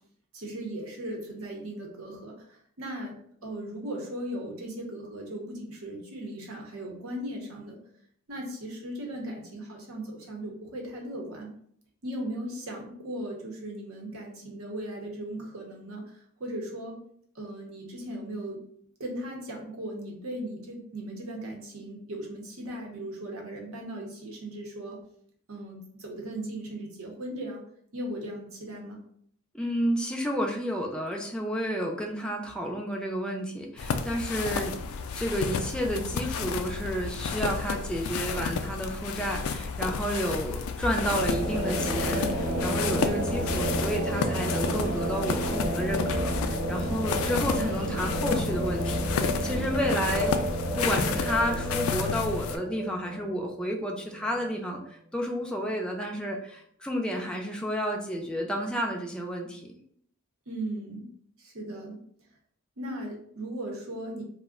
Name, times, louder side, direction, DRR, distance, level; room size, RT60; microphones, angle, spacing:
voice 1, 0.3-7.8 8.3-11.5 12.0-17.0 17.3-18.6 19.0-25.0 25.5-27.6 27.9-29.0 47.5-47.9 60.5-61.1 61.4-62.0 62.8-64.2, right 1 dB, 75° right, 0 dB, 0.8 m, -37 dB
voice 2, 29.5-34.8 35.1-50.4 50.8-59.7, equal, 5° left, 0 dB, 0.4 m, -31 dB
sound 1, 33.8-52.6, left 5 dB, 85° left, 0.3 m, -32 dB
sound 2, 40.8-54.5, right 1 dB, 40° right, 0.6 m, -31 dB
2.4 x 2.1 x 3.6 m, 0.65 s
head